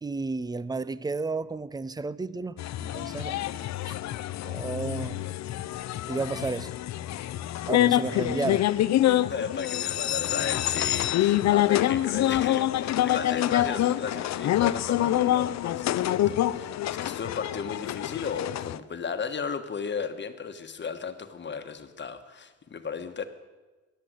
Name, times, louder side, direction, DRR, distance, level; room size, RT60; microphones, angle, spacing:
voice 1, 0.0-3.5 3.8-4.0 4.4-5.3 6.1-6.7 7.7-8.7, right 3 dB, 15° right, 0.5 m, -32 dB
sound 1, 2.6-18.8, left 13 dB, 65° left, 0.6 m, -26 dB
voice 2, 9.3-23.3, left 6 dB, 35° left, 1.3 m, -35 dB
14.5 x 10.5 x 7.9 m
cardioid pair, 90°, 30 cm